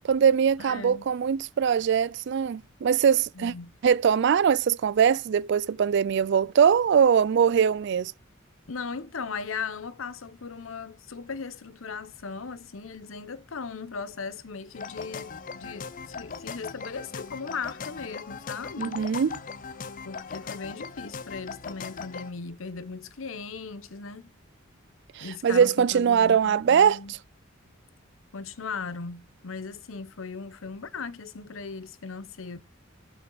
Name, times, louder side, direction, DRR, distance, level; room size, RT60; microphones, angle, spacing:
voice 1, 0.0-3.5 3.8-8.1 18.8-19.4 25.2-27.2, right 7 dB, 55° right, 0.3 m, -22 dB
voice 2, 0.6-1.0 3.3-3.7 8.7-19.0 20.0-24.3 25.2-27.1 28.3-32.6, left 5 dB, 75° left, 0.8 m, -38 dB
sound 1, 14.7-22.3, left 5 dB, 40° left, 0.5 m, -39 dB
6.9 x 5.8 x 3.9 m
head